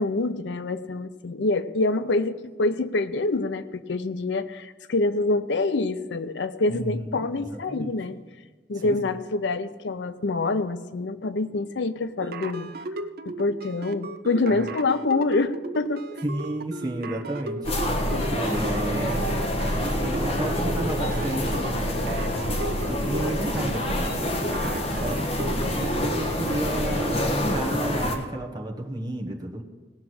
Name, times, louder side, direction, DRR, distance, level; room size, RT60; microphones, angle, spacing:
voice 1, 0.0-8.2 8.7-12.7 13.3-16.0 18.1-18.3, left 2 dB, 80° left, 12 dB, 0.6 m, -26 dB
voice 2, 6.7-7.9 8.7-9.2 16.2-18.1 18.3-19.2 19.8-24.3 24.9-29.6, right 1 dB, 20° right, 0 dB, 1.2 m, -32 dB
sound 1, 12.2-27.2, right 2 dB, 55° right, 0.7 m, -36 dB
sound 2, 17.6-28.2, left 1 dB, 35° left, 1.3 m, -27 dB
18.0 x 6.0 x 6.2 m, 1.3 s
head